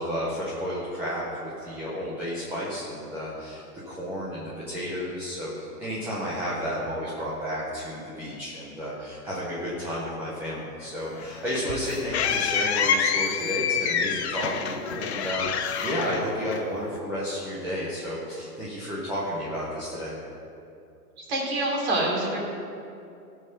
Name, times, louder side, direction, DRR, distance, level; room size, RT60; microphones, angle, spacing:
voice 1, 0.0-5.5 5.8-20.1, equal, 5° right, -9 dB, 0.5 m, -32 dB
sound 1, 11.2-17.0, left 7 dB, 45° left, 0.7 m, -27 dB
voice 2, 21.2-22.4, right 1 dB, 40° right, -2 dB, 3.1 m, -26 dB
15.0 x 5.6 x 6.5 m, 2.6 s
hypercardioid pair, 155°, 47 cm